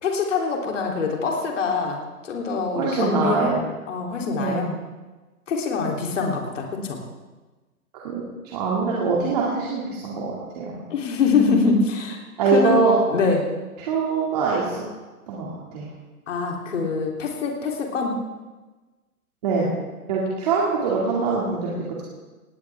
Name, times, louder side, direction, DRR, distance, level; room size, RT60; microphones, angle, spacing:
voice 1, 0.0-2.0 2.2-3.5 3.9-4.7 5.5-7.0 10.9-12.2 12.5-12.8 13.1-13.5 16.3-18.2, left 4 dB, 50° left, 0 dB, 3.4 m, -24 dB
voice 2, 2.7-3.6 4.4-4.7 7.9-8.2 8.5-10.8 12.4-13.0 13.8-14.8 15.3-15.9 19.4-19.7 20.1-21.7, right 4 dB, 25° right, -5 dB, 2.4 m, -23 dB
19.5 x 17.0 x 3.6 m, 1.2 s
hypercardioid pair, 170°, 46 cm